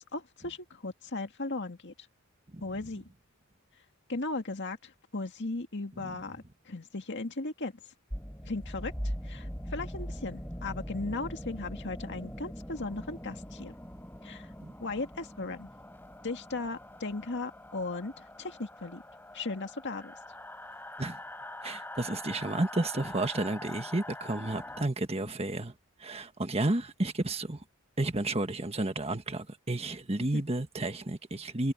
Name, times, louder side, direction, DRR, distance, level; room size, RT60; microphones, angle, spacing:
voice 1, 0.0-1.9 2.6-3.1 4.1-7.7 8.5-13.7 14.2-14.5 14.8-15.7 16.2-19.0 19.3-20.1 30.3-30.4, left 3 dB, 55° left, 2.0 m, -37 dB
sound 1, 8.1-24.8, equal, 10° left, 6.9 m, -42 dB
voice 2, 21.6-25.7 26.0-27.6 28.0-31.7, right 2 dB, 30° right, 1.5 m, -32 dB
head